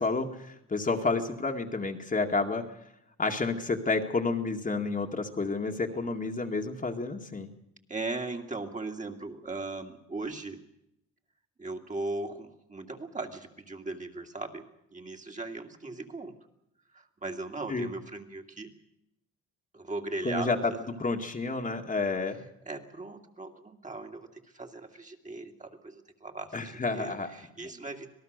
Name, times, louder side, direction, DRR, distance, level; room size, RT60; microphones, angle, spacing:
voice 1, 0.0-2.6 3.2-7.5 17.7-17.9 20.2-20.6 21.0-22.4 26.5-27.3, left 3 dB, 25° left, 3 dB, 2.0 m, -30 dB
voice 2, 5.6-6.1 7.9-10.6 11.6-16.4 16.9-18.7 19.7-20.6 22.7-28.1, right 2 dB, 25° right, 2 dB, 2.5 m, -38 dB
26.0 x 18.5 x 6.7 m, 0.82 s
cardioid pair, 90°, 30 cm